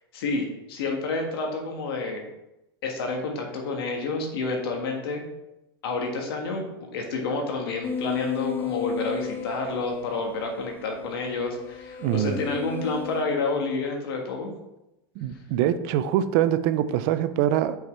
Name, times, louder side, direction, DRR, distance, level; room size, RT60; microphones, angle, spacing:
voice 1, 0.1-2.2 2.8-5.2 5.8-14.5, left 3 dB, 80° left, 2 dB, 1.6 m, -29 dB
sound 1, 7.8-13.2, left 8 dB, 15° left, 0.7 m, -34 dB
voice 2, 12.0-12.4 15.2-17.8, right 11 dB, 55° right, 12 dB, 0.6 m, -24 dB
6.1 x 5.5 x 4.4 m, 0.91 s
supercardioid pair, 130°, 12 cm